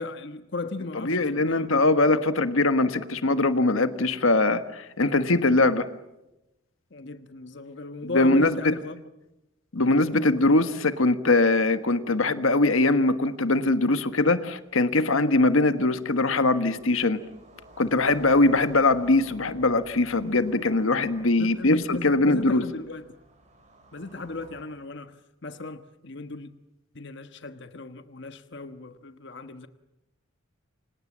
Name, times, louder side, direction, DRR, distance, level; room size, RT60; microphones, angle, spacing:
voice 1, 0.0-1.8 6.9-9.1 9.8-10.3 21.4-23.1 23.9-26.6 26.9-29.7, left 2 dB, 55° left, 1.3 m, -37 dB
voice 2, 1.0-5.9 8.1-8.7 9.7-17.2 17.8-22.6, left 2 dB, 75° left, 1.4 m, -22 dB
sound 1, 11.6-11.7 12.1-12.2 12.4-24.6, right 2 dB, 35° right, 7.3 m, -53 dB
29.0 x 25.5 x 7.4 m
head